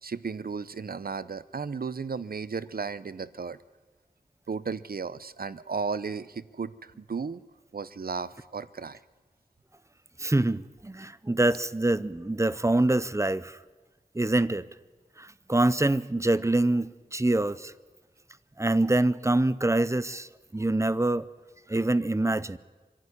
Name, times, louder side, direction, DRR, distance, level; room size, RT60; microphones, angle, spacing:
voice 1, 0.0-3.6 4.5-7.4 7.7-9.0, right 5 dB, 70° right, 0.7 m, -34 dB
voice 2, 10.2-13.6 14.1-14.7 15.2-17.7 18.6-21.2 21.7-22.6, right 2 dB, 20° right, 0.6 m, -25 dB
25.5 x 11.0 x 9.8 m
wide cardioid pair, 70°, 16 cm